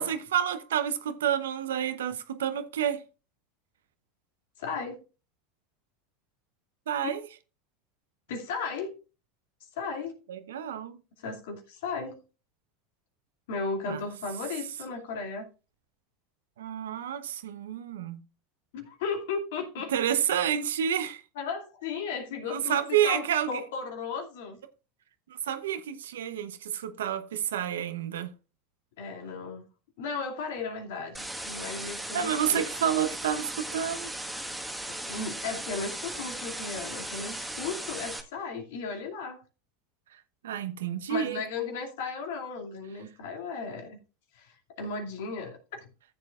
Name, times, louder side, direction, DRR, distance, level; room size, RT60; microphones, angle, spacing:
voice 1, 0.0-3.0 6.9-7.2 10.3-11.0 13.9-14.0 16.6-18.2 19.9-21.2 22.5-23.6 25.5-28.3 32.1-34.1 40.4-41.4, right 9 dB, 85° right, 0.8 m, -29 dB
voice 2, 4.6-5.0 7.0-7.2 8.3-9.0 9.8-10.2 11.2-12.2 13.5-15.5 18.7-19.9 21.4-24.6 29.0-29.7 30.0-32.7 34.9-39.4 41.1-44.0 44.3-45.8, left 4 dB, 75° left, 2.6 m, -35 dB
sound 1, 31.1-38.2, right 1 dB, 5° right, 1.5 m, -37 dB
14.0 x 7.6 x 2.4 m
hypercardioid pair, 100°, 0 cm